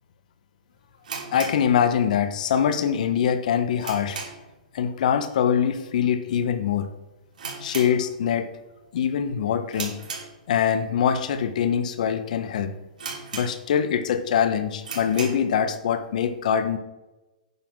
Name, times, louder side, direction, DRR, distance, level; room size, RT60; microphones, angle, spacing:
sound 1, 1.0-2.4 2.6-2.7 3.3-4.6 4.9-5.2 5.5-5.6 6.3-6.5 6.8-6.9 7.3-8.5 8.9-9.2 9.7-10.8 11.4-11.5 12.1-12.2 12.4-12.5 13.0-13.9 14.3-14.4 14.8-15.5, right 5 dB, 70° right, 3.3 m, -37 dB
voice 1, 1.3-4.2 4.7-6.9 7.6-8.5 8.9-9.9 10.5-12.7 13.3-16.8, left 8 dB, 65° left, 10 dB, 1.1 m, -23 dB
9.4 x 5.8 x 6.2 m, 1.0 s
hypercardioid pair, 140°, 4 cm